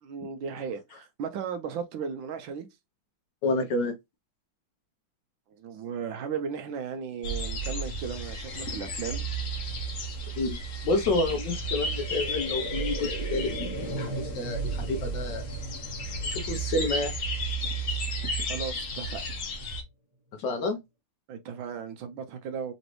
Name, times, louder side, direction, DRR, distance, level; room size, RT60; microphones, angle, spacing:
voice 1, 0.0-2.7 5.6-9.2 18.5-19.2 21.3-22.7, right 6 dB, 75° right, 1.3 m, -36 dB
voice 2, 3.4-3.9 10.4-10.6 10.8-15.4 16.3-17.1 20.4-20.8, left 2 dB, 70° left, 1.3 m, -29 dB
sound 1, 7.2-19.8, right 2 dB, 50° left, 1.1 m, -33 dB
sound 2, 9.3-18.8 19.2-19.3, right 1 dB, 20° right, 1.1 m, -41 dB
4.0 x 3.1 x 3.0 m
omnidirectional pair, 2.2 m